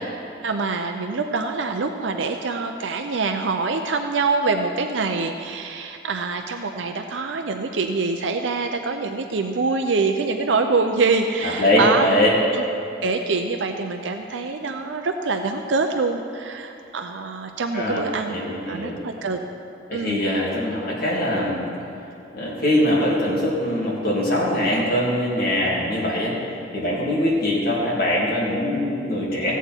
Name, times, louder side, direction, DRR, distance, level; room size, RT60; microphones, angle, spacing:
voice 1, 0.4-12.0 12.5-12.6 13.0-18.4 18.7-19.4 19.9-20.3, right 4 dB, 85° right, 5 dB, 0.6 m, -25 dB
voice 2, 11.4-12.3 17.7-19.0 19.9-21.6 22.3-26.3 26.7-29.5, left 1 dB, 55° left, -6 dB, 2.9 m, -22 dB
16.0 x 8.0 x 4.5 m, 2.7 s
head